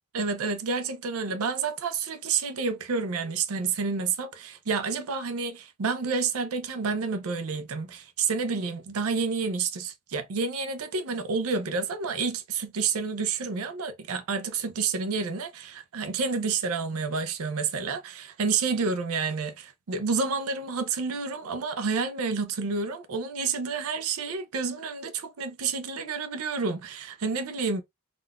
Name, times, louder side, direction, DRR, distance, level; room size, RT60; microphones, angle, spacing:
voice 1, 0.1-27.8, right 5 dB, 75° right, 0.5 m, -29 dB
3.6 x 2.4 x 2.2 m
head